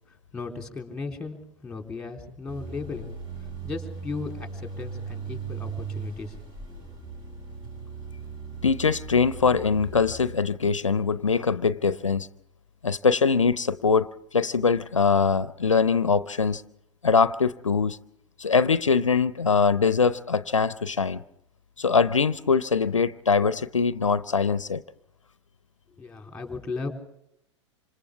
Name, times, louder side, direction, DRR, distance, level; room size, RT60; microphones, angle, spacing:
voice 1, 0.3-3.1 3.6-6.3 26.0-26.9, left 4 dB, 5° left, 3.6 m, -36 dB
sound 1, 2.5-10.2, right 5 dB, 35° right, 6.6 m, -38 dB
voice 2, 8.6-12.3 12.8-14.1 14.3-16.6 17.0-18.0 18.4-21.2 21.8-24.8, left 5 dB, 80° left, 0.7 m, -22 dB
27.5 x 26.5 x 3.5 m
figure-of-eight pair, 95°, 16 cm